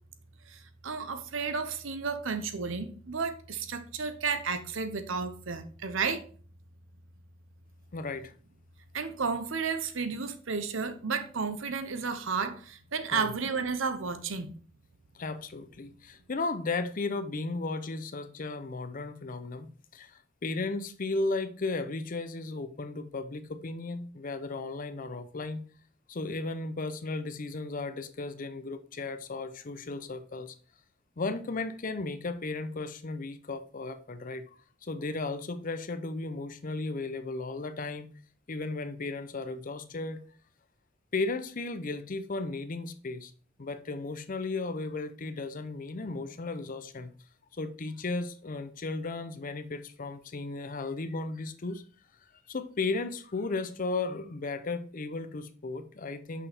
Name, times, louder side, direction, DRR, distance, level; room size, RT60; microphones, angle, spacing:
voice 1, 0.5-6.2 8.9-14.5, right 5 dB, 70° right, 0.8 m, -32 dB
voice 2, 7.9-8.3 13.1-13.3 15.1-25.6 26.1-30.5 31.2-38.1 38.5-40.3 41.1-43.3 43.6-47.1 47.6-51.8 52.5-56.5, left 3 dB, 40° left, 0.6 m, -35 dB
6.4 x 5.6 x 3.5 m
head